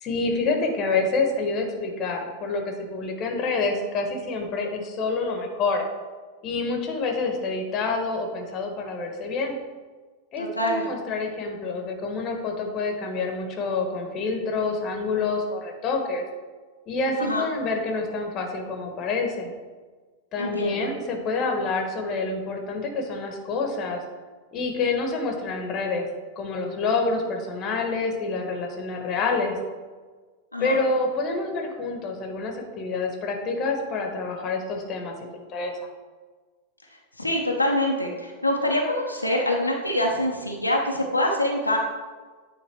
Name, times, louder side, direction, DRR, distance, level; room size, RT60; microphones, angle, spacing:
voice 1, 0.0-5.8 6.4-9.6 10.3-16.2 16.9-19.5 20.3-24.0 24.5-26.1 26.4-29.6 30.6-35.7, left 3 dB, 35° left, 3 dB, 1.2 m, -27 dB
voice 2, 10.4-10.8 17.2-17.4 20.4-20.9 30.5-30.8 37.2-41.8, left 1 dB, 85° left, 0 dB, 0.8 m, -25 dB
8.8 x 3.8 x 4.4 m, 1.4 s
figure-of-eight pair, 90°, 0 cm